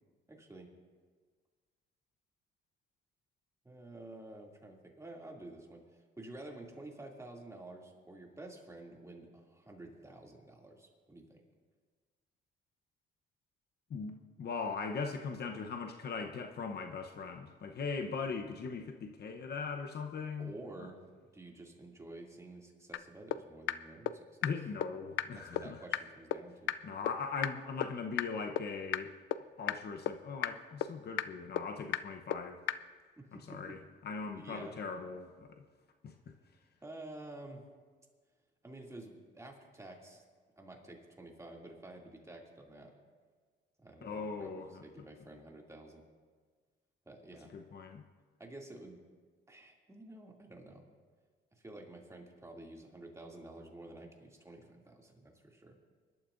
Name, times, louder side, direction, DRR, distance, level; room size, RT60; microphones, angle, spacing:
voice 1, 0.3-0.7 3.6-5.8 6.2-11.4 20.4-24.3 25.4-26.7 33.2-33.7 34.3-34.8 36.8-37.6 38.6-40.2 40.6-42.9 43.8-46.0 47.1-47.5 48.4-49.0 49.5-50.8 51.5-55.8, right 2 dB, 15° right, -1 dB, 2.6 m, -50 dB
voice 2, 13.9-20.5 20.8-20.9 24.4-25.8 26.8-29.2 29.6-32.6 33.3-35.6 36.0-36.3 44.0-44.8 47.5-48.0, left 5 dB, 55° left, 5 dB, 0.9 m, -40 dB
sound 1, 22.9-23.0 23.3-23.4 23.7-23.8 24.1-24.2 24.4-24.5 24.8-24.9 25.2-25.3 25.6-25.7 25.9-26.0 26.3-26.4 26.7-26.8 27.1-27.2 27.4-27.5 27.8-27.9 28.2-28.3 28.6-28.7 28.9-29.0 29.3-29.4 29.7-29.8 30.1-30.2 30.4-30.5 30.8-30.9 31.2-31.3 31.6-31.7 31.9-32.0 32.3-32.4 32.7-32.8, left 14 dB, 80° left, 0.5 m, -31 dB
24.5 x 12.0 x 2.6 m, 1.5 s
cardioid pair, 90°, 20 cm